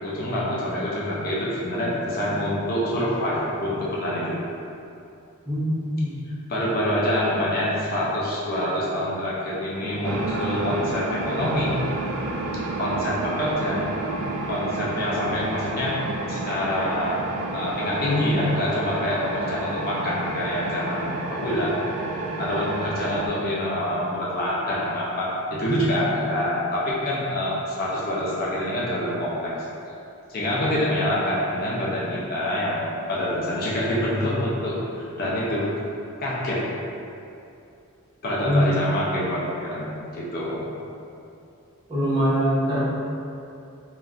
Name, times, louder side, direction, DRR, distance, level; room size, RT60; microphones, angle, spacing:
voice 1, 0.0-4.4 6.5-11.7 12.8-13.8 14.5-16.0 16.3-21.7 22.4-29.7 30.3-35.6 36.2-36.6 38.2-40.7, left 1 dB, 40° left, -6 dB, 0.4 m, -26 dB
voice 2, 5.5-6.1 38.4-38.7 41.9-42.8, equal, 20° right, -11 dB, 0.8 m, -22 dB
sound 1, 10.0-23.3, right 2 dB, 80° right, 0.3 m, -30 dB
2.4 x 2.2 x 3.6 m, 2.7 s
head